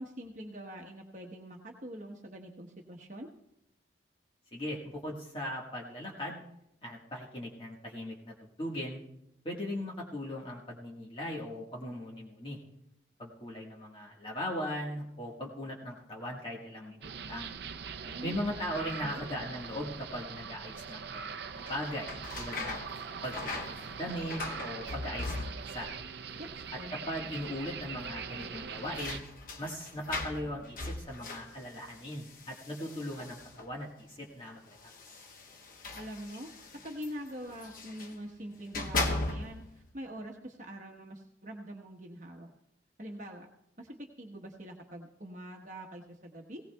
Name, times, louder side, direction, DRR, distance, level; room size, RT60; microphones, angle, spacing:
voice 1, 0.0-3.3 18.1-18.4 19.0-19.2 26.3-27.0 35.9-36.5 36.8-42.5 43.0-43.5 43.8-46.6, equal, 40° right, 1 dB, 1.1 m, -44 dB
voice 2, 4.5-6.4 6.8-9.0 9.4-12.6 13.2-17.5 18.2-22.8 23.2-23.4 23.8-25.9 26.9-29.2 29.6-34.8, equal, 30° left, -2 dB, 1.5 m, -39 dB
sound 1, 17.0-29.2, right 6 dB, 60° right, 0.5 m, -42 dB
sound 2, 21.6-26.0 26.2-26.9 27.2-27.3 28.4-33.8 34.7-38.2 38.6-39.8, left 2 dB, 50° left, 1.0 m, -39 dB
18.0 x 17.5 x 2.3 m, 0.79 s
head